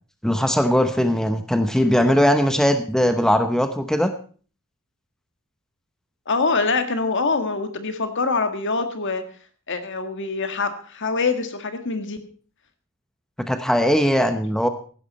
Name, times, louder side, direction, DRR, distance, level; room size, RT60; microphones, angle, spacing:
voice 1, 0.2-4.1 13.5-14.7, equal, 5° left, 8 dB, 0.9 m, -19 dB
voice 2, 6.3-9.2 9.7-12.2, left 4 dB, 60° left, 8 dB, 1.8 m, -24 dB
15.5 x 12.0 x 4.2 m, 0.41 s
head